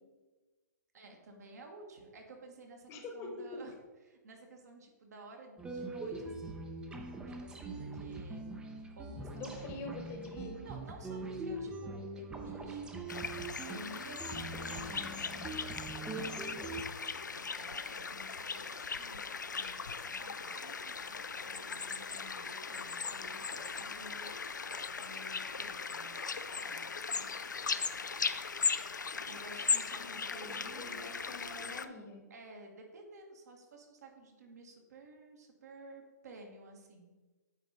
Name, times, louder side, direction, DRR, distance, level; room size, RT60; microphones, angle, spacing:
voice 1, 0.9-3.7 4.0-6.7 7.3-8.4 8.9-10.1 10.6-13.2 13.7-24.3 25.0-27.3 29.3-31.0 32.3-37.1, right 2 dB, 65° right, 2 dB, 1.5 m, -53 dB
voice 2, 2.9-3.6 9.3-10.6 29.9-32.2, left 2 dB, 30° left, 3 dB, 1.2 m, -45 dB
sound 1, 5.6-16.8, right 3 dB, 10° right, 0.6 m, -42 dB
sound 2, 13.1-31.9, left 5 dB, 90° left, 0.4 m, -38 dB
9.1 x 4.1 x 3.9 m, 1.2 s
hypercardioid pair, 130°, 10 cm